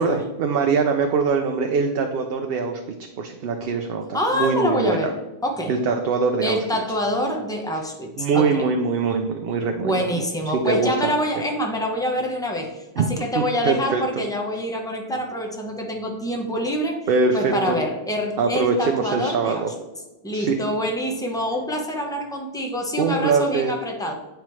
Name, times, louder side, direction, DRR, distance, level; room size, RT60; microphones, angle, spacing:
voice 1, 0.0-2.8 3.2-5.1 5.7-6.6 8.2-10.1 10.6-11.1 13.0-13.1 13.3-14.0 17.1-17.8 18.4-19.7 20.3-20.6 23.0-23.7, right 5 dB, 70° right, 4 dB, 0.8 m, -22 dB
voice 2, 4.1-5.1 5.4-5.7 6.4-8.6 9.8-12.8 13.1-17.0 17.3-19.6 20.2-24.1, equal, 5° left, 1 dB, 0.8 m, -26 dB
8.9 x 4.5 x 3.1 m, 1.1 s
omnidirectional pair, 1.1 m